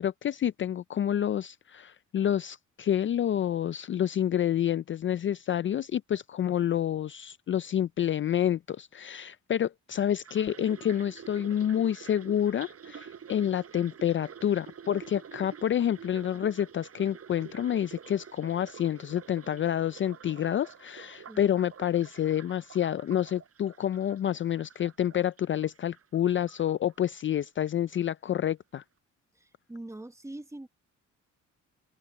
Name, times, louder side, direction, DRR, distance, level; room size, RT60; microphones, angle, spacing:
voice 1, 0.0-28.8, left 10 dB, 40° left, 0.4 m, -28 dB
sound 1, 10.2-26.2 26.5-27.4 27.7-28.0, right 7 dB, 50° right, 6.5 m, -48 dB
voice 2, 29.3-30.7, right 1 dB, 10° right, 1.3 m, -43 dB
open air
cardioid pair, 90°, 30 cm